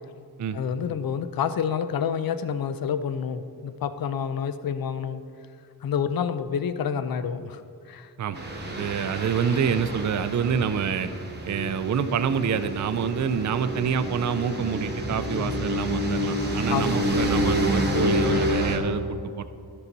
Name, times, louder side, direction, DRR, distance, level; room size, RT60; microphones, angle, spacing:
voice 1, 0.5-5.2 5.8-8.1 16.7-17.2, left 7 dB, 60° left, 12 dB, 0.5 m, -28 dB
sound 1, 8.3-18.8, equal, 25° right, 1.0 m, -28 dB
voice 2, 8.7-11.1 11.4-19.4, right 7 dB, 45° right, 11 dB, 0.4 m, -27 dB
13.5 x 5.7 x 4.0 m, 2.4 s
wide cardioid pair, 160°, 40 cm